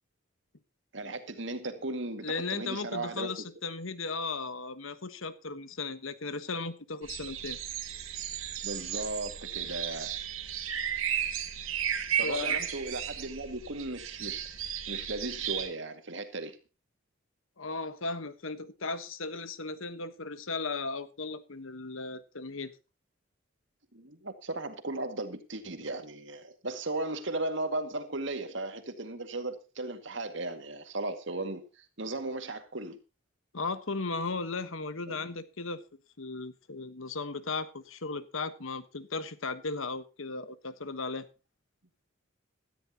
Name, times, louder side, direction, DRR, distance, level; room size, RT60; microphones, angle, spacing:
voice 1, 0.9-3.3 8.6-10.1 12.2-14.5 14.9-16.6 23.9-33.0 35.1-35.3, right 2 dB, 60° right, 2.1 m, -36 dB
voice 2, 2.2-7.6 12.2-12.7 17.6-22.7 33.5-35.8 36.2-41.3, left 3 dB, 75° left, 1.3 m, -36 dB
sound 1, 7.0-15.7, right 9 dB, 85° right, 2.1 m, -34 dB
17.0 x 13.5 x 2.9 m
head